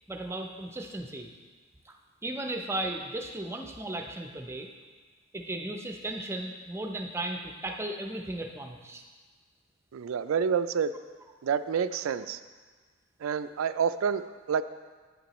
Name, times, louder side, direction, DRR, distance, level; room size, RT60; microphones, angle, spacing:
voice 1, 0.1-1.3 1.9-2.0 2.2-4.7 5.3-9.0, right 1 dB, 15° right, 3 dB, 0.5 m, -35 dB
voice 2, 9.9-10.9 11.4-12.4 13.2-14.6, right 7 dB, 80° right, 13 dB, 0.3 m, -28 dB
9.3 x 8.4 x 3.0 m, 1.4 s
head